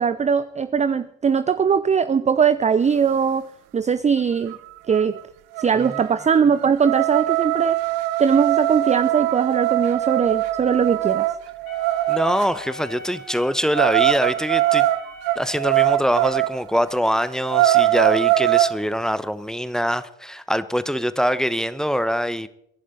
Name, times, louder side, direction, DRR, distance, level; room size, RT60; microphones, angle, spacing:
voice 1, 0.0-3.4 3.7-4.5 4.9-5.2 5.6-7.8 8.2-11.3, right 6 dB, 15° right, 0.5 m, -20 dB
sound 1, 4.5-4.6 4.9-5.2 5.6-12.5 13.7-16.6 17.0-17.1 17.4-18.8, right 15 dB, 65° right, 0.8 m, -21 dB
voice 2, 5.7-6.0 12.1-14.9 15.3-22.5, equal, ahead, 0.9 m, -23 dB
Wind instrument woodwind instrument, 11.6-15.8, left 4 dB, 85° left, 1.9 m, -41 dB
22.5 x 11.0 x 4.2 m
hypercardioid pair, 55°, 41 cm